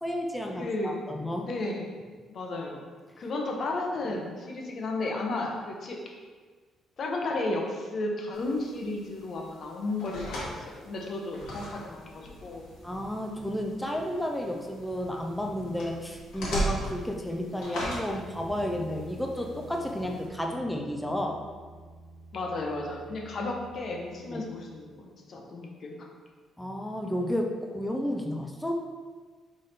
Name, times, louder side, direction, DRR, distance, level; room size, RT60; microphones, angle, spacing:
voice 1, 0.0-1.5 12.8-21.4 24.3-24.4 26.6-28.8, equal, 5° left, 1 dB, 0.5 m, -32 dB
voice 2, 0.6-1.0 1.4-2.0 2.3-2.9 3.2-6.0 7.0-12.7 22.3-26.1, left 2 dB, 55° left, 0 dB, 0.9 m, -33 dB
sound 1, 8.3-20.3, right 1 dB, 80° left, 1.4 m, -39 dB
sound 2, 17.6-25.0, right 1 dB, 55° right, 1.1 m, -49 dB
3.6 x 3.5 x 4.2 m, 1.5 s
cardioid pair, 90°, 0 cm